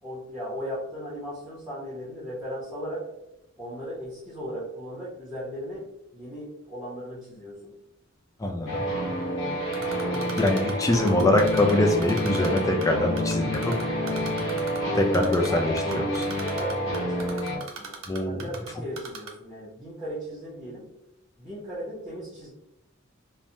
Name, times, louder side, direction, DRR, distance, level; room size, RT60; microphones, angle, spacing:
voice 1, 0.0-3.1 3.6-5.9 6.1-7.7 9.9-10.2 14.8-18.0 18.3-20.9 21.4-22.5, equal, 5° right, -8 dB, 0.8 m, -37 dB
voice 2, 8.4-8.8 10.4-13.7 15.1-16.2 18.1-18.4, left 1 dB, 15° left, 3 dB, 0.3 m, -23 dB
sound 1, 8.7-17.6, equal, 65° left, 1.0 m, -28 dB
Typing, 9.7-11.7 12.0-12.9 13.2-14.8 15.1-15.5 15.8-18.7 19.0-19.3, right 6 dB, 70° right, 0.5 m, -39 dB
3.1 x 2.1 x 2.6 m, 0.84 s
head